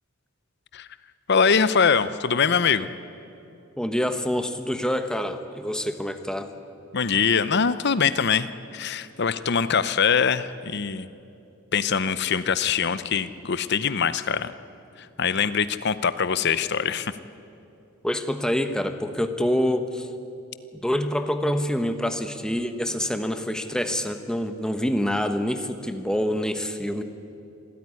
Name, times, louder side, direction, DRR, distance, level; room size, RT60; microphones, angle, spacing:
voice 1, 1.3-2.9 6.9-8.5 8.7-11.1 11.7-14.5 15.2-17.1, left 6 dB, 50° left, 14 dB, 0.7 m, -23 dB
voice 2, 3.8-6.5 18.0-20.1 20.8-27.0, equal, 5° left, 8 dB, 1.0 m, -26 dB
26.0 x 14.0 x 9.8 m, 2.7 s
head